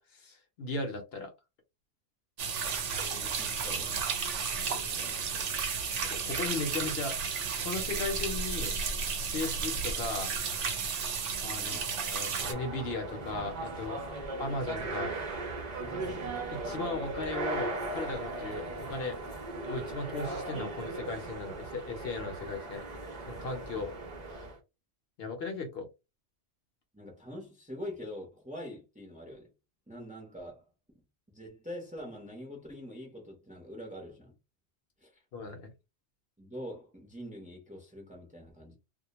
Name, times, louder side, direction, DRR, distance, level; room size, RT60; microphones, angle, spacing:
voice 1, 0.0-1.3 6.0-7.2 7.6-8.7 9.3-10.3 11.4-14.0 14.4-15.2 16.1-16.2 16.5-19.2 19.7-22.8 23.3-23.9 25.2-25.9 35.3-35.7, left 3 dB, 65° left, 0.8 m, -37 dB
sound 1, 2.4-12.5, right 6 dB, 90° right, 1.0 m, -33 dB
voice 2, 3.1-4.1 4.7-5.5 11.6-11.9 23.7-23.9 26.9-29.5 29.9-30.6 31.3-34.4 35.0-35.1 36.4-38.8, equal, 10° right, 0.6 m, -44 dB
sound 2, 12.4-24.6, right 2 dB, 45° right, 0.6 m, -38 dB
2.2 x 2.2 x 2.9 m
omnidirectional pair, 1.2 m